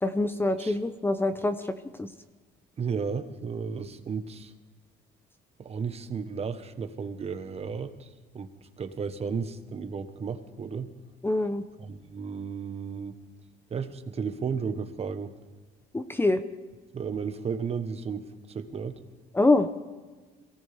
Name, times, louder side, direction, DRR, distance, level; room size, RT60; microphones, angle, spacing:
voice 1, 0.0-1.6 2.0-2.1 11.2-11.6 15.9-16.4 19.3-19.8, left 2 dB, 15° left, 10 dB, 0.8 m, -25 dB
voice 2, 2.8-4.5 5.6-8.1 8.3-8.5 8.8-10.9 11.8-13.2 13.7-15.3 16.9-19.0, right 6 dB, 40° right, 9 dB, 1.2 m, -33 dB
23.0 x 17.0 x 3.5 m, 1.3 s
cardioid pair, 110°, 17 cm